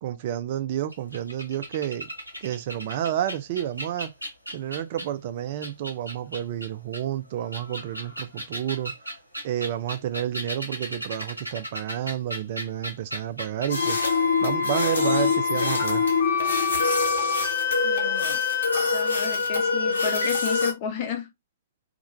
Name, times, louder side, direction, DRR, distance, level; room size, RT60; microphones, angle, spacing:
voice 1, 0.0-2.1 2.4-4.1 4.5-8.9 9.4-14.0 14.4-16.0, right 11 dB, 45° right, 0.3 m, -30 dB
sound 1, 0.9-5.2 5.6-7.0 7.4-13.7 14.0-14.2, equal, 90° right, 0.7 m, -36 dB
sound 2, 13.7-20.7, left 5 dB, 70° left, 0.9 m, -24 dB
voice 2, 17.8-18.4 18.9-21.3, left 6 dB, 35° left, 0.7 m, -32 dB
2.4 x 2.1 x 2.9 m
figure-of-eight pair, 115°, 0 cm